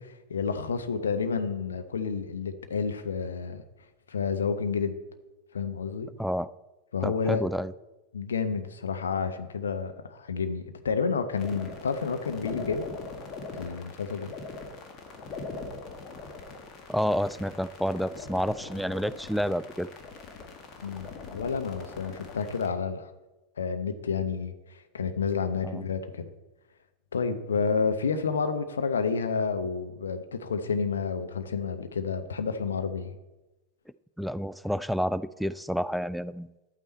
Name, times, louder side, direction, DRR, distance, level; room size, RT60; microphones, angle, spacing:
voice 1, 0.0-3.6 4.1-5.0 5.5-6.1 6.9-7.4 8.1-12.9 13.5-14.3 20.8-23.1 23.6-26.3 27.1-33.1, left 5 dB, 70° left, 8 dB, 0.9 m, -30 dB
voice 2, 7.0-7.7 16.9-19.9 25.6-25.8 34.2-36.5, equal, ahead, 15 dB, 0.3 m, -29 dB
sound 1, 11.4-22.7, left 3 dB, 30° left, 1.6 m, -42 dB
11.5 x 8.8 x 4.3 m, 1.1 s
figure-of-eight pair, 90°, 0 cm